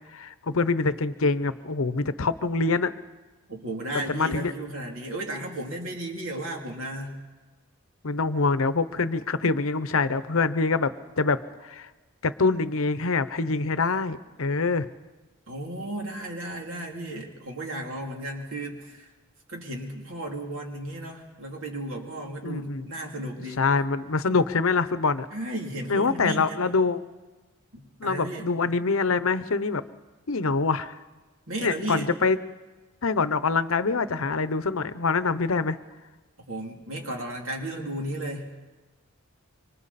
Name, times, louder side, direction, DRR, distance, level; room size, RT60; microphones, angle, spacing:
voice 1, 0.1-2.9 3.9-4.5 8.0-11.9 12.2-14.9 22.4-22.9 23.6-25.3 25.9-27.0 28.0-29.8 30.3-31.0 31.6-32.4 33.0-35.8, left 4 dB, 70° left, 13 dB, 0.8 m, -25 dB
voice 2, 3.5-7.2 15.5-19.1 19.5-23.6 25.3-26.7 27.7-28.5 31.5-32.1 36.5-38.5, right 1 dB, 65° right, 1 dB, 3.0 m, -34 dB
25.5 x 25.0 x 4.2 m, 1.2 s
head